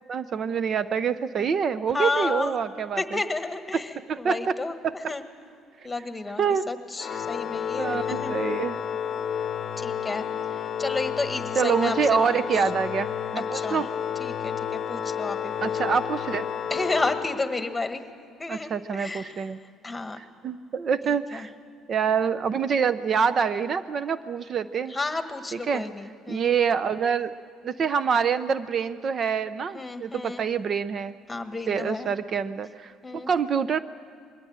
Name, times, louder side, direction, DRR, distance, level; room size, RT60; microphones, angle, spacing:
voice 1, 0.1-3.2 3.7-4.5 4.8-5.1 6.4-6.7 7.8-8.8 11.6-13.9 15.6-16.5 18.5-19.6 20.2-21.5 21.9-24.9 25.5-25.9 26.3-27.4 27.6-31.2 31.7-33.8, right 6 dB, 45° right, 14 dB, 0.6 m, -26 dB
voice 2, 1.9-2.5 3.0-4.7 5.1-5.2 5.8-8.3 9.8-10.2 10.6-12.6 13.5-13.8 14.2-16.0 16.7-18.0 18.4-19.4 19.8-20.2 21.3-21.5 24.9-26.5 29.7-30.4 31.3-32.1 33.0-33.3, left 3 dB, 15° left, 8 dB, 1.6 m, -31 dB
Organ, 7.0-17.9, left 8 dB, 45° left, 0.8 m, -31 dB
21.5 x 16.5 x 8.8 m, 2.4 s
supercardioid pair, 90°, 0 cm